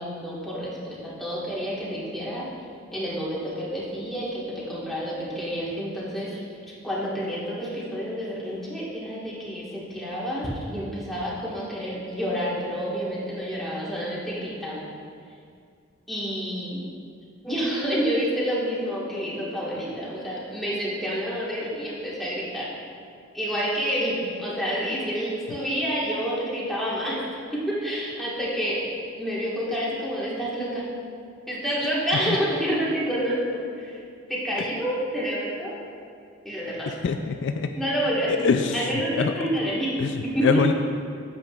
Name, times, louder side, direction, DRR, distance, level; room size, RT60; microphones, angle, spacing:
voice 1, 0.0-2.4 2.9-6.4 6.8-14.9 16.1-16.8 17.4-22.7 23.3-27.2 27.5-28.9 29.2-30.8 31.5-34.0 34.3-35.8 36.4-36.9 37.7-38.4 38.7-40.0 40.2-40.6, equal, ahead, -8 dB, 1.5 m, -28 dB
voice 2, 36.9-37.7 38.3-38.8 39.2-39.3 40.0-40.1 40.4-40.7, left 5 dB, 60° left, 7 dB, 0.3 m, -23 dB
8.8 x 7.7 x 2.4 m, 2.2 s
head